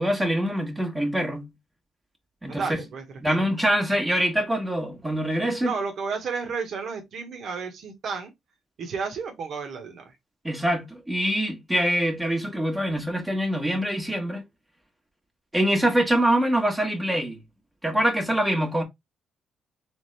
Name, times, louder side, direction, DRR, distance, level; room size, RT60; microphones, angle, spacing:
voice 1, 0.0-1.5 2.4-2.8 3.2-5.7 10.4-14.4 15.5-17.4 17.8-18.8, equal, 15° right, 1.3 m, -24 dB
voice 2, 2.5-3.5 5.6-8.3 8.8-10.1, right 5 dB, 65° right, 1.4 m, -32 dB
3.6 x 3.5 x 3.2 m
cardioid pair, 90°, 0 cm